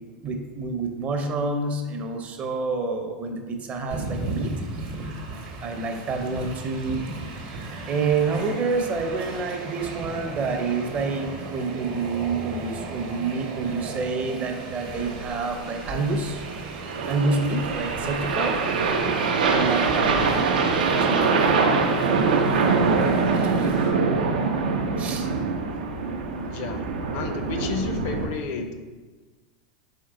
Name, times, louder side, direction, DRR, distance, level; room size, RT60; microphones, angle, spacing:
voice 1, 0.2-4.5 5.6-7.0 7.9-16.4 17.1-18.6 19.5-20.5 21.0-21.3 23.3-23.7 25.0-25.3, right 4 dB, 35° right, 5 dB, 0.6 m, -28 dB
Train, 3.9-23.9, right 3 dB, 60° right, 0.9 m, -36 dB
sound 1, 14.9-28.3, right 4 dB, 90° right, 0.5 m, -24 dB
voice 2, 26.4-26.8 27.1-28.9, left 5 dB, 55° left, 6 dB, 0.5 m, -31 dB
4.4 x 3.1 x 3.8 m, 1.3 s
supercardioid pair, 115°, 5 cm